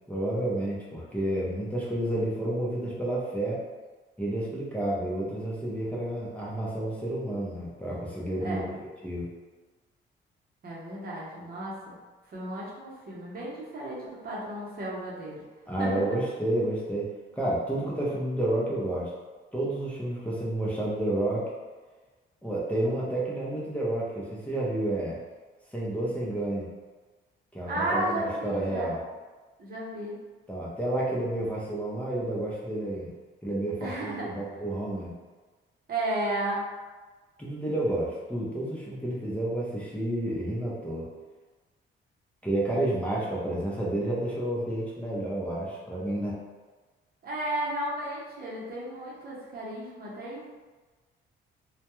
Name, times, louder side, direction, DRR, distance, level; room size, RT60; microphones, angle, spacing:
voice 1, 0.1-3.6 4.2-9.3 15.7-17.1 17.3-19.1 19.5-21.5 22.4-25.2 25.7-26.7 27.5-29.0 30.5-33.1 33.4-35.1 37.4-41.1 42.4-46.4, right 1 dB, 5° left, -7 dB, 0.6 m, -30 dB
voice 2, 8.4-8.7 10.6-12.0 12.3-15.4 15.8-15.9 27.7-29.0 29.6-30.2 33.8-34.4 35.9-36.7 47.2-50.5, right 1 dB, 50° right, -6 dB, 0.8 m, -33 dB
2.2 x 2.2 x 3.0 m, 1.3 s
cardioid pair, 90°, 20 cm